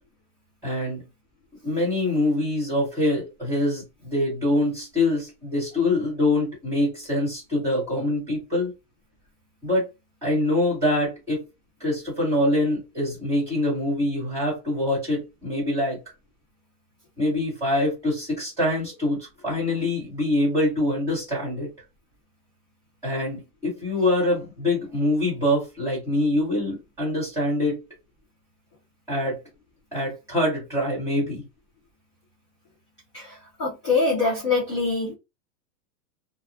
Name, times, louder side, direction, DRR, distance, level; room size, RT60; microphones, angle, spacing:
voice 1, 0.6-1.0 1.6-8.7 9.6-9.8 10.2-11.4 11.8-16.0 17.2-21.7 23.0-27.8 29.1-29.4 29.9-31.4, left 1 dB, 5° right, 1.2 m, -24 dB
voice 2, 33.1-35.1, left 3 dB, 20° left, 0.4 m, -24 dB
2.8 x 2.1 x 2.6 m
supercardioid pair, 175°, 49 cm